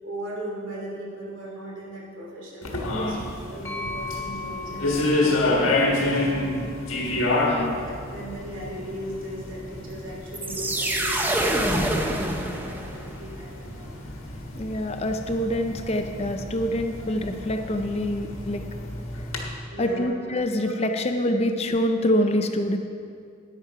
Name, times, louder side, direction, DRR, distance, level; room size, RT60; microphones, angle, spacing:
voice 1, 0.0-3.2 3.5-6.8 7.1-14.0 19.7-20.1, right 1 dB, 70° right, -3 dB, 2.9 m, -38 dB
sound 1, 2.6-19.4, left 2 dB, 85° left, 1.6 m, -29 dB
voice 2, 2.9-3.2 7.5-7.8 14.6-18.6 19.8-22.8, left 1 dB, 30° left, 6 dB, 0.5 m, -26 dB
sound 2, 3.6-7.4, left 4 dB, 10° left, 1.2 m, -38 dB
sound 3, 10.3-13.1, right 1 dB, 10° right, 0.7 m, -26 dB
10.5 x 9.3 x 4.8 m, 2.3 s
head